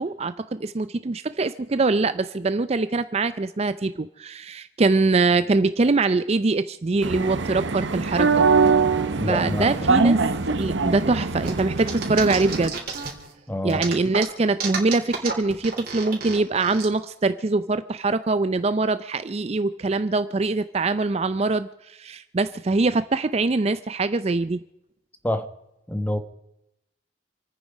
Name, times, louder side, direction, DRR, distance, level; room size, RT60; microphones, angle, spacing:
voice 1, 0.0-8.5 9.3-10.2 10.6-12.8 13.6-24.6, right 3 dB, 35° right, 13 dB, 0.5 m, -23 dB
sound 1, 7.0-12.7, right 4 dB, 85° right, 0.9 m, -22 dB
voice 2, 9.2-10.1 13.5-13.9 25.2-25.5 25.9-26.2, left 1 dB, 10° left, 8 dB, 1.2 m, -27 dB
sound 2, 11.4-13.3 13.7-16.9, right 5 dB, 55° right, 3.4 m, -31 dB
28.0 x 9.5 x 5.0 m, 0.87 s
head